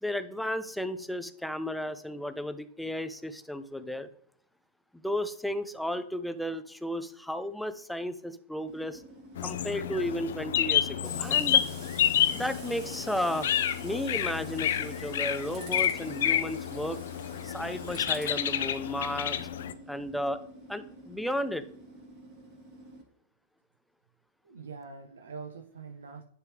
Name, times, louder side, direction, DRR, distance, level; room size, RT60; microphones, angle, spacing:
voice 1, 0.0-4.1 5.0-9.0 9.4-11.6 12.3-13.5 13.8-17.0 17.4-19.4 19.9-20.4 20.7-21.6, left 1 dB, ahead, 11 dB, 0.4 m, -33 dB
Tools, 8.7-23.0, right 2 dB, 45° right, 2.3 m, -48 dB
sound 1, 9.4-19.7, left 10 dB, 70° left, 0.4 m, -29 dB
voice 2, 24.4-26.2, right 5 dB, 80° right, 3 dB, 0.5 m, -44 dB
9.8 x 3.4 x 3.3 m, 0.66 s
hypercardioid pair, 105°, 0 cm